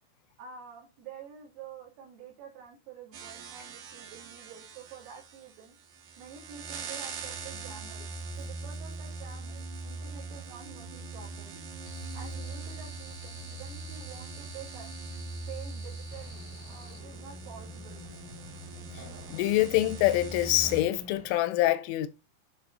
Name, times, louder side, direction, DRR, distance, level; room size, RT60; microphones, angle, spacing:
voice 1, 0.4-5.8 6.2-8.1 8.4-11.6 12.1-14.9 15.5-18.0 19.7-19.9, right 7 dB, 85° right, 4.7 m, -48 dB
sound 1, 3.1-20.8, right 3 dB, 65° right, 2.4 m, -41 dB
sound 2, 11.8-17.0, left 1 dB, 40° right, 2.0 m, -51 dB
sound 3, 16.1-21.3, left 2 dB, 15° right, 1.4 m, -49 dB
voice 2, 19.3-22.1, left 15 dB, 85° left, 3.0 m, -25 dB
11.0 x 4.4 x 2.5 m
omnidirectional pair, 5.7 m